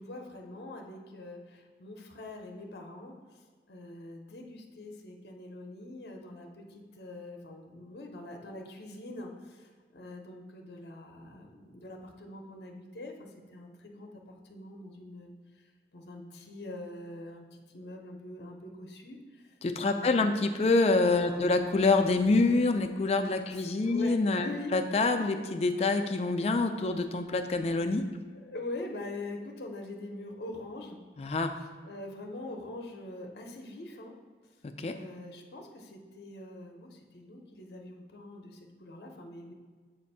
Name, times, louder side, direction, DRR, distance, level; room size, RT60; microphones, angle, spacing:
voice 1, 0.0-3.4 3.7-15.3 15.9-19.6 19.8-20.4 21.2-21.6 23.5-24.7 25.2-25.4 26.0-26.3 28.3-31.0 31.5-34.1 34.8-39.5, left 2 dB, 70° left, 2 dB, 0.7 m, -44 dB
voice 2, 19.6-28.0 31.2-31.5 34.8-34.9, left 3 dB, 35° left, 6 dB, 0.3 m, -26 dB
7.2 x 2.6 x 5.4 m, 1.5 s
head